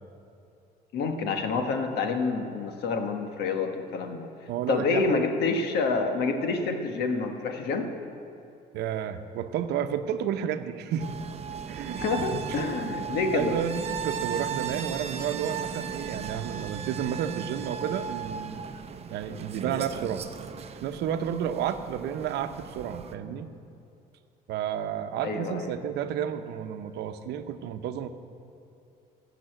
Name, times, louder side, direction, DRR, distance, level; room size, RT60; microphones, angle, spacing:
voice 1, 0.9-4.3 4.7-7.9 12.0-13.5 25.2-25.7, left 4 dB, 75° left, 5 dB, 1.5 m, -28 dB
voice 2, 4.5-5.2 8.7-11.1 11.7-12.0 12.3-12.7 13.3-18.6 19.1-20.3 20.8-23.5 24.5-28.1, right 9 dB, 80° right, 9 dB, 0.8 m, -31 dB
sound 1, 11.0-23.2, right 6 dB, 40° right, 0.7 m, -36 dB
15.5 x 6.8 x 8.1 m, 2.6 s
cardioid pair, 110°, 17 cm